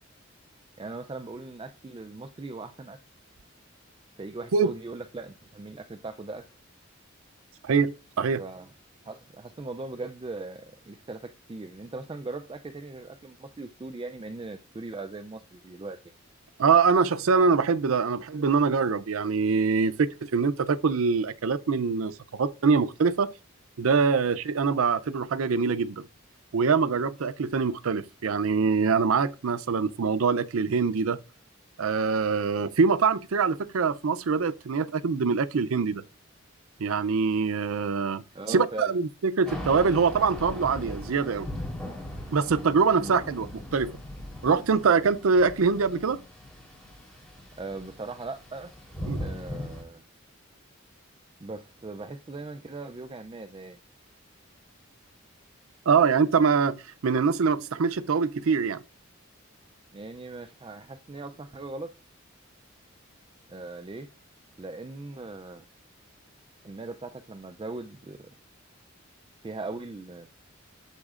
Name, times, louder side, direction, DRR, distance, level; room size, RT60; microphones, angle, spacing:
voice 1, 0.8-3.0 4.2-6.5 8.4-8.7 9.1-16.1 38.3-39.0 43.0-43.2 47.6-48.7 49.2-50.0 51.4-53.8 59.9-61.9 63.5-64.1 64.6-65.6 66.6-68.3 69.4-70.3, right 3 dB, 25° right, 0.4 m, -39 dB
voice 2, 7.6-8.4 16.6-23.3 23.8-26.1 26.5-31.2 31.8-36.0 36.8-38.2 38.5-41.5 42.3-44.0 44.4-46.2 49.1-49.2 55.9-58.8, right 5 dB, 85° right, 0.5 m, -24 dB
Thunder / Rain, 39.5-49.8, left 1 dB, 5° left, 3.6 m, -39 dB
13.5 x 7.2 x 2.5 m
head